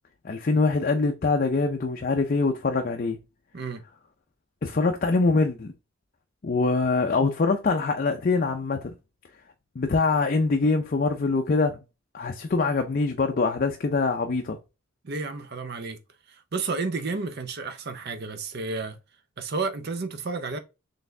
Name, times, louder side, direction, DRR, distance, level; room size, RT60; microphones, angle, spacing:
voice 1, 0.2-3.2 4.6-5.7 6.4-8.9 9.8-11.8 12.1-14.6, left 3 dB, 40° left, 0.4 m, -24 dB
voice 2, 15.0-16.0 16.3-19.0 19.4-20.6, right 3 dB, 50° right, 0.6 m, -31 dB
4.1 x 3.3 x 2.6 m
head